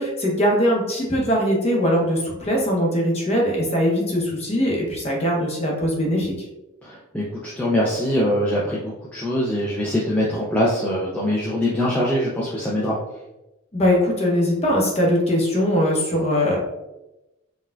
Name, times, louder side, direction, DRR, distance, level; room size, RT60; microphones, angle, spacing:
voice 1, 0.0-6.3 13.7-16.6, equal, 30° left, -2 dB, 0.8 m, -21 dB
voice 2, 6.8-13.0, equal, 5° left, -6 dB, 0.4 m, -23 dB
4.2 x 2.3 x 2.2 m, 0.95 s
head